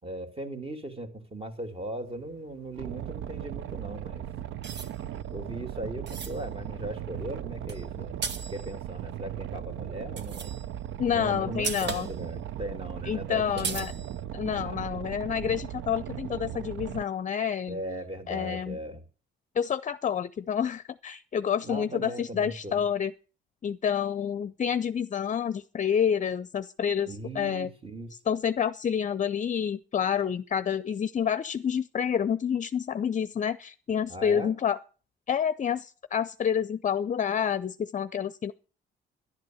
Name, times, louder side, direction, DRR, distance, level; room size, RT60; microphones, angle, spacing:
voice 1, 0.0-4.3 5.3-10.6 11.1-14.2 14.5-14.9 17.7-19.0 21.6-22.8 27.1-28.1 34.1-34.5, right 1 dB, 30° right, 3.1 m, -38 dB
sound 1, 2.1-4.2 4.6-9.1 9.7-10.9 11.1-11.2 11.5-12.5 12.7-12.8 13.0-13.1 13.6-14.2, right 5 dB, 60° right, 1.6 m, -39 dB
Boat Water vehicle, 2.7-17.0, right 11 dB, 75° right, 0.8 m, -38 dB
voice 2, 11.0-12.1 13.1-13.9 14.3-17.8 18.3-18.8 19.5-23.1 23.6-27.7 28.3-34.8 35.3-38.5, left 8 dB, 40° left, 0.6 m, -28 dB
12.5 x 11.0 x 7.9 m
cardioid pair, 90°, 20 cm